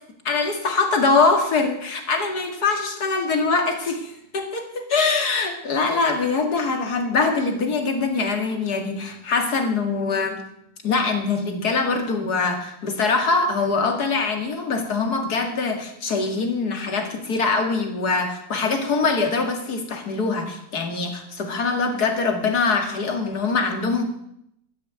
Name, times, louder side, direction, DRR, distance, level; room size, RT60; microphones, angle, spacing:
voice 1, 0.2-10.4 10.8-24.0, left 4 dB, 60° left, 4 dB, 2.6 m, -23 dB
12.5 x 10.0 x 9.0 m, 0.77 s
omnidirectional pair, 1.9 m